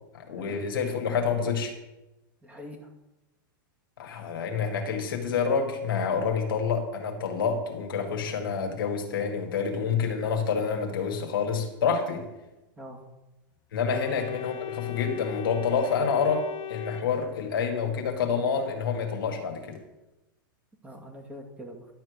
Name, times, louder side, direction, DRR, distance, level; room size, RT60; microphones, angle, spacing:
voice 1, 0.1-1.7 4.0-12.3 13.7-19.8, left 6 dB, 80° left, 2 dB, 2.0 m, -28 dB
voice 2, 2.4-2.9 12.8-13.0 14.0-14.2 20.8-21.9, equal, 10° right, 0 dB, 2.4 m, -44 dB
Organ, 13.9-17.8, left 11 dB, 40° left, 0.8 m, -38 dB
11.5 x 4.5 x 8.0 m, 1.0 s
hypercardioid pair, 115°, 11 cm